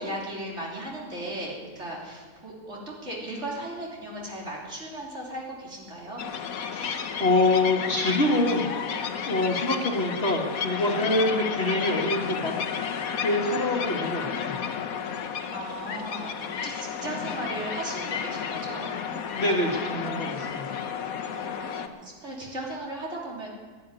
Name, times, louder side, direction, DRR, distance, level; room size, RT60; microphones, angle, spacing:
voice 1, 0.0-6.2 15.5-18.9 21.3-23.5, right 1 dB, 45° right, -3 dB, 3.6 m, -36 dB
sound 1, 6.2-21.9, left 7 dB, 65° left, 1.3 m, -32 dB
voice 2, 6.7-8.7 9.3-12.5 13.2-14.6 19.3-20.8, left 2 dB, 40° left, 0 dB, 1.8 m, -25 dB
11.5 x 11.0 x 9.7 m, 1.5 s
omnidirectional pair, 1.6 m